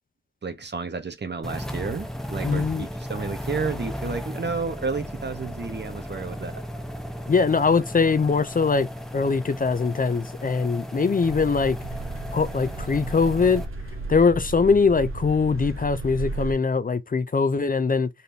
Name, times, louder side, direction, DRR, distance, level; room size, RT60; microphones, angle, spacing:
voice 1, 0.4-6.6, right 4 dB, 55° right, 1.1 m, -31 dB
sound 1, 1.4-13.6, equal, ahead, 0.9 m, -35 dB
voice 2, 2.4-2.9 7.3-8.9 9.1-11.8 12.3-13.6 14.1-18.1, left 4 dB, 40° left, 0.5 m, -22 dB
sound 2, 11.2-16.5, right 3 dB, 80° right, 1.0 m, -34 dB
4.1 x 3.3 x 2.7 m
wide cardioid pair, 60°, 21 cm